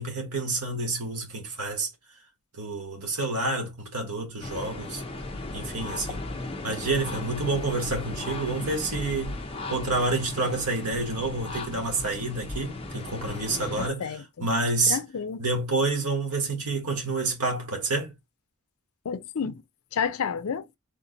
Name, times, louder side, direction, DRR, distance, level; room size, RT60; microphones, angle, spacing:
voice 1, 0.0-1.9 2.5-5.0 5.5-6.2 6.6-9.4 9.7-15.0 15.4-18.1, right 3 dB, 85° right, 1.7 m, -28 dB
sound 1, 4.4-13.9, left 2 dB, 25° left, 0.6 m, -36 dB
voice 2, 13.8-14.5 14.9-15.4 19.0-19.6 19.9-20.6, left 6 dB, 70° left, 0.5 m, -30 dB
3.7 x 2.9 x 3.8 m
head